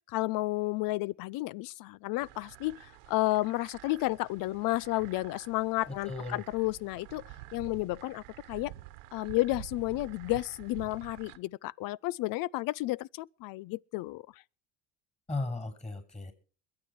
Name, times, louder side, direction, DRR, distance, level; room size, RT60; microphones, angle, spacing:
voice 1, 0.1-7.2 7.5-8.2 8.5-8.7 9.1-14.2, left 19 dB, 60° left, 0.6 m, -32 dB
sound 1, 2.2-11.4, right 15 dB, 85° right, 1.3 m, -49 dB
voice 2, 5.9-6.4 15.3-16.3, left 2 dB, 15° left, 7.9 m, -36 dB
22.0 x 9.7 x 4.7 m
supercardioid pair, 100°, 38 cm